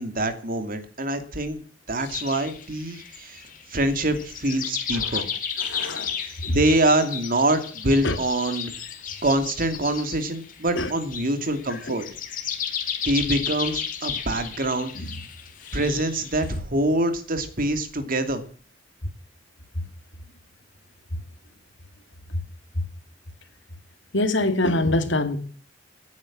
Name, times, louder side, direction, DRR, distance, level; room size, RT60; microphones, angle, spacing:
voice 1, 0.0-1.6 1.9-3.4 3.7-5.2 6.3-8.7 9.2-12.0 13.0-14.9 15.7-18.4, right 1 dB, 50° right, 2.6 m, -25 dB
sound 1, 2.1-16.6, left 7 dB, 45° left, 2.8 m, -34 dB
voice 2, 5.6-6.1 6.4-6.6 8.0-8.2 10.8-10.9 11.9-12.0 15.0-15.1 24.1-25.4, left 1 dB, 80° left, 2.4 m, -24 dB
17.5 x 9.4 x 7.5 m
head